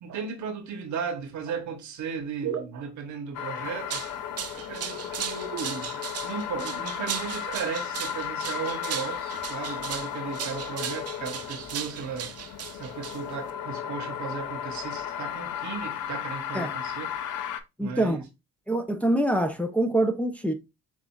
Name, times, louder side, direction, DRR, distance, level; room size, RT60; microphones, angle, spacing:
voice 1, 0.0-4.0 4.5-12.3 12.7-17.1 17.8-18.2, right 6 dB, 70° right, 1.0 m, -35 dB
sound 1, 3.3-17.6, left 9 dB, 80° left, 0.6 m, -35 dB
sound 2, 3.7-13.5, right 8 dB, 55° right, 0.7 m, -37 dB
voice 2, 17.8-18.2 18.7-20.5, right 1 dB, 5° left, 0.6 m, -25 dB
7.3 x 2.5 x 2.3 m
cardioid pair, 90°, 30 cm